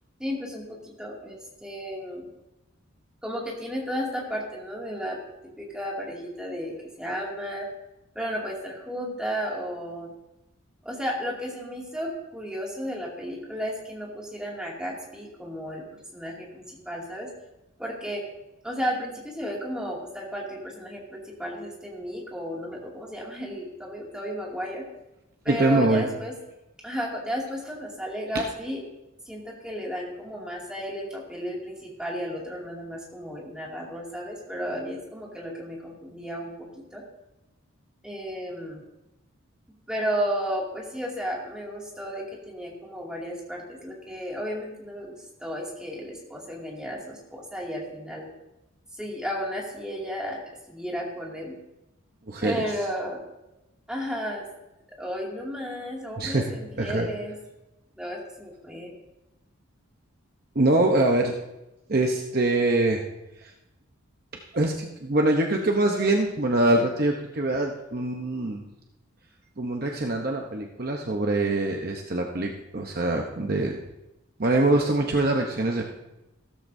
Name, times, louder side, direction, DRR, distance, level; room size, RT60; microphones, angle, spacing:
voice 1, 0.2-2.3 3.2-5.2 5.6-7.7 8.1-10.1 10.8-15.8 16.1-17.3 17.8-18.2 18.6-24.8 25.4-26.3 26.8-28.8 29.3-37.0 38.0-38.8 39.9-45.1 45.4-48.2 48.9-50.4 50.7-51.5 52.4-53.2 53.9-54.4 55.0-57.3 58.0-58.9, equal, 5° right, -4 dB, 2.4 m, -33 dB
voice 2, 25.5-26.1 52.3-52.6 56.2-56.5 56.8-57.1 60.5-61.3 61.9-63.0 63.4-63.5 64.3-68.6 69.6-73.7 74.4-75.8, right 2 dB, 45° right, 1 dB, 0.9 m, -24 dB
15.5 x 13.5 x 2.7 m, 0.95 s
head